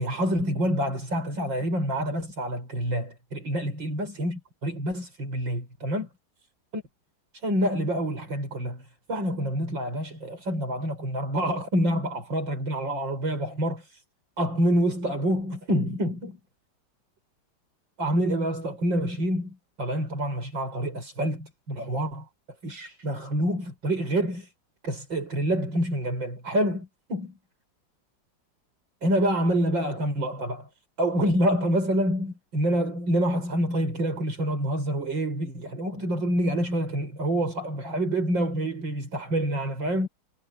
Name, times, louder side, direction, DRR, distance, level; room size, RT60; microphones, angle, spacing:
voice 1, 0.0-6.1 6.7-6.8 7.4-8.8 9.1-14.0 14.4-16.4 18.0-22.3 22.6-24.5 24.8-27.3 29.0-30.7 31.0-40.1, equal, 75° right, 7.9 m, -27 dB
omnidirectional pair, 2.0 m